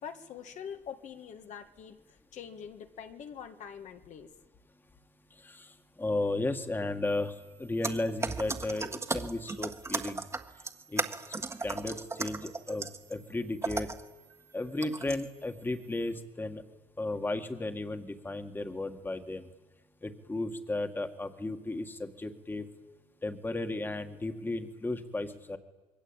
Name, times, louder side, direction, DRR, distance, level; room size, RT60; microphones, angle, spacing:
voice 1, 0.0-4.3, left 7 dB, 55° left, 6 dB, 1.8 m, -44 dB
voice 2, 6.0-10.2 10.9-11.0 11.6-13.9 14.5-16.6 17.0-19.5 20.0-22.6 23.2-25.6, left 2 dB, 15° left, 7 dB, 1.9 m, -34 dB
sound 1, 7.8-13.1 13.6-14.1 14.8-15.3, right 3 dB, 20° right, 1.6 m, -36 dB
27.0 x 22.5 x 9.0 m, 1.1 s
cardioid pair, 130°, 15 cm